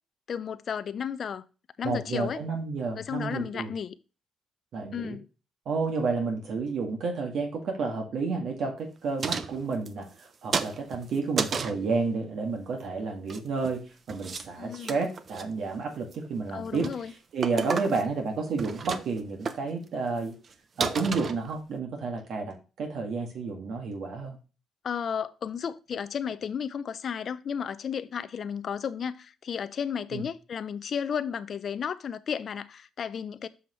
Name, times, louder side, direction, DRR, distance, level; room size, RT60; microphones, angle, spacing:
voice 1, 0.3-1.5 1.8-2.4 3.0-3.9 4.9-5.2 14.6-15.0 16.5-17.1 24.8-33.5, left 7 dB, 55° left, 0.6 m, -33 dB
voice 2, 1.8-3.7 4.7-5.2 5.7-10.1 10.4-16.9 17.3-20.4 20.8-24.4 30.1-30.2, right 4 dB, 70° right, 1.9 m, -31 dB
sound 1, 9.2-10.3 10.5-11.8 13.1-13.8 14.1-14.5 14.7-15.4 15.9-16.3 16.7-17.0 17.4-18.2 18.5-19.2 19.5-19.6 20.1-20.2 20.4-20.5 20.8-21.8, right 5 dB, 45° right, 0.8 m, -32 dB
7.1 x 5.7 x 3.1 m
cardioid pair, 90°, 0 cm